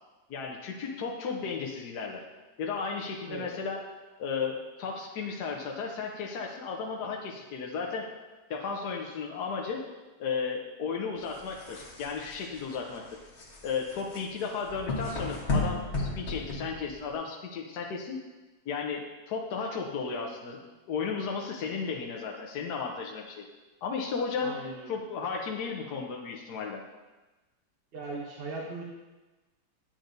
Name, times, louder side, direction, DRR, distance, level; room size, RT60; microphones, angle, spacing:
voice 1, 0.3-2.2 2.6-3.8 4.2-8.1 8.5-9.8 10.2-13.2 13.6-18.2 18.7-23.5 23.8-24.6 24.9-26.8, left 5 dB, 70° left, 0 dB, 1.3 m, -34 dB
sound 1, 11.2-17.1, left 3 dB, 40° left, 1.4 m, -34 dB
voice 2, 24.4-25.0 27.9-28.8, right 3 dB, 40° right, -2 dB, 0.9 m, -38 dB
9.1 x 8.6 x 2.6 m, 1.2 s
omnidirectional pair, 1.9 m